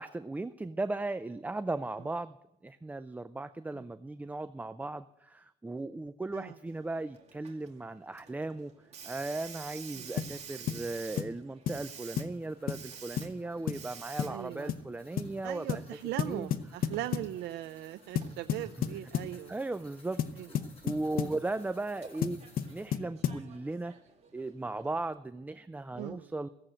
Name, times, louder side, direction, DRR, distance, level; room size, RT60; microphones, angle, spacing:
voice 1, 0.0-2.4 2.6-8.7 9.0-16.5 18.8-19.0 19.5-20.2 20.5-24.0 24.3-26.5, right 2 dB, 10° right, 13 dB, 0.4 m, -37 dB
Hiss, 6.7-25.1, right 6 dB, 40° right, 2.1 m, -51 dB
sound 1, 10.2-10.4 10.7-10.9 11.2-11.4 11.7-11.8 12.2-12.4 12.7-12.9 13.2-13.3 13.7-13.9 14.2-14.4 14.7-14.9 15.2-15.3 15.7-15.9 16.2-17.3 18.2-19.4 20.2-21.4 22.2-23.5, left 9 dB, 60° left, 0.8 m, -33 dB
sound 2, 11.6-23.0, left 2 dB, 35° left, 7.8 m, -61 dB
voice 2, 14.3-14.7 15.4-19.5 20.4-20.5 21.2-21.3 26.0-26.3, right 14 dB, 85° right, 11 dB, 0.6 m, -39 dB
16.0 x 7.8 x 8.8 m, 0.85 s
cardioid pair, 110°, 17 cm